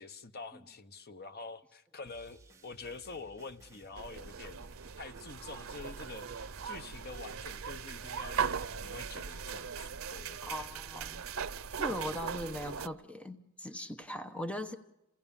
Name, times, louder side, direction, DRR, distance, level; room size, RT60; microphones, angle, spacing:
voice 1, 0.0-4.6 5.0-10.8, left 4 dB, 50° left, 9 dB, 1.1 m, -47 dB
sound 1, 2.1-9.1, right 2 dB, 15° right, 1.4 m, -59 dB
sound 2, 4.0-12.9, right 6 dB, 85° right, 0.8 m, -39 dB
voice 2, 10.4-11.3 11.8-14.8, equal, 5° left, 8 dB, 1.0 m, -39 dB
28.5 x 17.5 x 7.2 m, 0.90 s
head